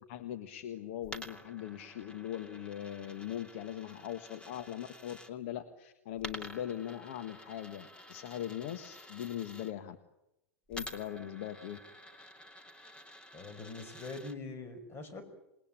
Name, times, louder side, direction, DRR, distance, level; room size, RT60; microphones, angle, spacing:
voice 1, 0.1-10.0 10.7-11.8, left 11 dB, 60° left, 8 dB, 1.6 m, -40 dB
Coin (dropping), 1.0-5.3 6.2-9.7 10.7-14.4, left 1 dB, 15° left, 2.6 m, -50 dB
voice 2, 13.3-15.2, left 3 dB, 30° left, 9 dB, 5.5 m, -43 dB
27.5 x 20.0 x 8.9 m, 0.91 s
hypercardioid pair, 95°, 8 cm